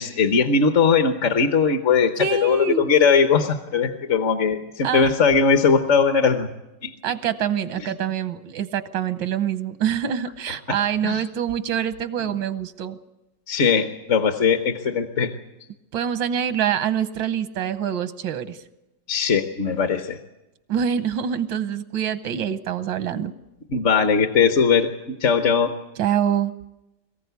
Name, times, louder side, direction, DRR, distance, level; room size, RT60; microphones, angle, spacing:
voice 1, 0.0-6.5 6.8-6.9 7.8-7.9 10.7-10.8 11.0-11.2 13.5-15.3 19.1-20.2 23.7-25.7, left 5 dB, 50° left, 7 dB, 1.1 m, -20 dB
voice 2, 2.2-2.9 4.8-5.1 7.0-13.0 15.9-18.6 20.7-23.3 26.0-26.5, right 8 dB, 85° right, 12 dB, 1.6 m, -25 dB
22.5 x 15.0 x 8.1 m, 0.98 s
omnidirectional pair, 2.0 m